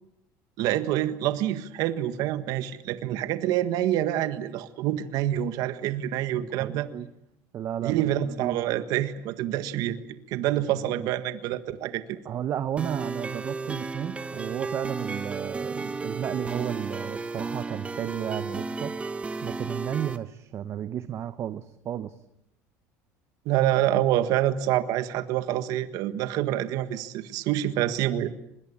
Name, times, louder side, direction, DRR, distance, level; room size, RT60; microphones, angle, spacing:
voice 1, 0.6-6.9 7.8-12.2 23.4-28.3, right 12 dB, 65° right, 11 dB, 1.6 m, -27 dB
voice 2, 6.4-7.1 7.5-8.6 10.5-11.1 12.2-18.9 19.4-22.2, right 10 dB, 45° right, 12 dB, 0.9 m, -33 dB
sound 1, 12.8-20.2, right 3 dB, 15° right, 1.3 m, -33 dB
24.0 x 21.5 x 8.7 m, 0.82 s
cardioid pair, 125°, 7 cm